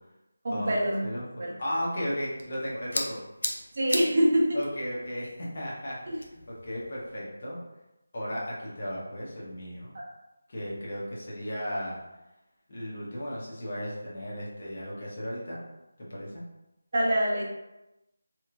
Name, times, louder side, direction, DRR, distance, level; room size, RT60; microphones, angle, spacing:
voice 1, 0.4-1.0 1.4-1.5 3.7-4.6 6.1-6.2 16.9-17.4, equal, 40° right, -3 dB, 0.5 m, -24 dB
voice 2, 1.0-3.2 4.5-5.3 5.5-6.2 6.5-7.6 8.1-9.9 10.5-12.0 12.7-15.6 16.0-16.3, equal, 40° left, -6 dB, 0.8 m, -35 dB
sound 1, 2.1-7.1, left 1 dB, 85° left, 0.5 m, -38 dB
2.9 x 2.3 x 2.4 m, 0.95 s
figure-of-eight pair, 175°, 0 cm